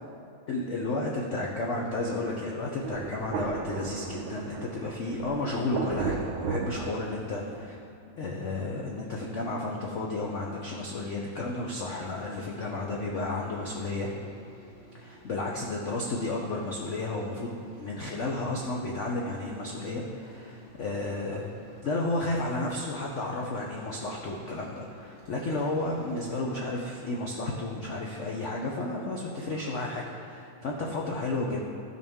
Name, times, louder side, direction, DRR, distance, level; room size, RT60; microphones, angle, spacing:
voice 1, 0.5-7.8 8.2-14.1 14.9-21.4 21.8-31.6, left 2 dB, 85° left, -2 dB, 0.6 m, -32 dB
Thunder, 2.8-7.6, right 5 dB, 80° right, 1.5 m, -35 dB
sound 1, 12.1-27.1, right 1 dB, 50° right, 3.0 m, -53 dB
14.0 x 6.2 x 3.6 m, 2.4 s
omnidirectional pair, 2.3 m